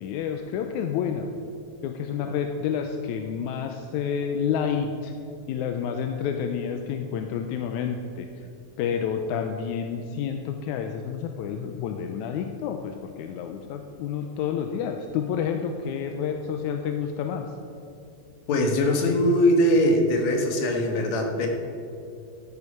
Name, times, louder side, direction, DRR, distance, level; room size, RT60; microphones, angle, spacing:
voice 1, 0.0-1.3 1.8-5.1 5.5-8.5 8.8-17.5, left 7 dB, 85° left, 5 dB, 2.0 m, -29 dB
voice 2, 18.5-21.5, left 1 dB, 65° left, 3 dB, 2.6 m, -21 dB
13.0 x 8.3 x 5.4 m, 2.6 s
omnidirectional pair, 3.5 m